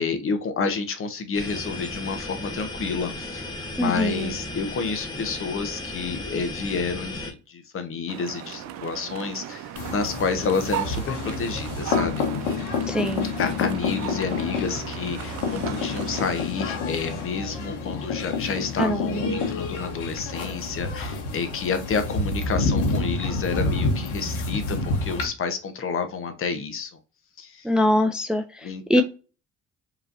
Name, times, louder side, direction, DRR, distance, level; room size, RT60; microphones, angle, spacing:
voice 1, 0.0-3.5 3.7-12.2 13.4-26.9 27.4-27.6 28.6-29.0, left 5 dB, 45° left, 1.0 m, -29 dB
sound 1, 1.3-7.3, left 2 dB, 15° left, 1.3 m, -35 dB
voice 2, 3.8-4.3 12.9-13.3 18.8-19.4 27.6-28.4 28.9-29.0, left 1 dB, 5° right, 0.4 m, -22 dB
sound 2, 8.1-16.4, right 11 dB, 65° right, 0.6 m, -36 dB
sound 3, 9.7-25.3, left 3 dB, 85° left, 1.3 m, -28 dB
5.1 x 3.1 x 2.6 m
supercardioid pair, 75°, 30 cm